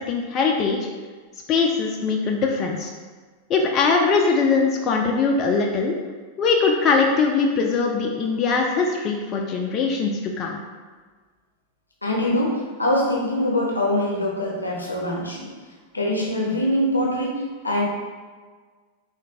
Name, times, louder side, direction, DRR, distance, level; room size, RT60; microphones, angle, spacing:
voice 1, 0.1-0.9 1.5-2.9 3.5-6.0 6.4-10.6, left 4 dB, 35° left, 1 dB, 0.3 m, -21 dB
voice 2, 12.0-15.5 15.9-17.8, left 1 dB, 85° left, -2 dB, 0.6 m, -23 dB
3.9 x 2.1 x 2.6 m, 1.5 s
figure-of-eight pair, 90°, 0 cm